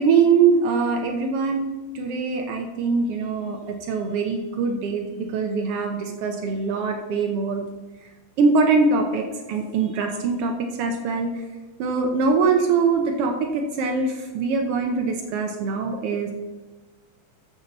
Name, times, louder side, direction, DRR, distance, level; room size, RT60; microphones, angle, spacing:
voice 1, 0.0-1.7 1.9-7.6 8.4-11.3 11.8-16.3, right 4 dB, 85° right, 3 dB, 1.3 m, -23 dB
14.0 x 7.1 x 4.0 m, 1.2 s
omnidirectional pair, 3.9 m